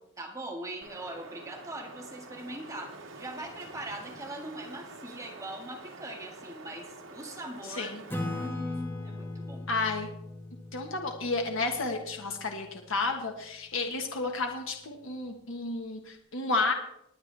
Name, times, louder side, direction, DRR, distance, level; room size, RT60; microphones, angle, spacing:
voice 1, 0.2-8.0 8.3-9.7, right 1 dB, 15° right, 1 dB, 1.7 m, -41 dB
Wind, 0.8-8.5, right 3 dB, 75° right, 1.6 m, -47 dB
Acoustic guitar / Strum, 8.1-13.1, left 2 dB, 10° left, 1.8 m, -39 dB
voice 2, 9.7-10.1 10.7-16.7, left 3 dB, 70° left, 3 dB, 1.4 m, -31 dB
20.0 x 9.5 x 3.4 m, 0.80 s
head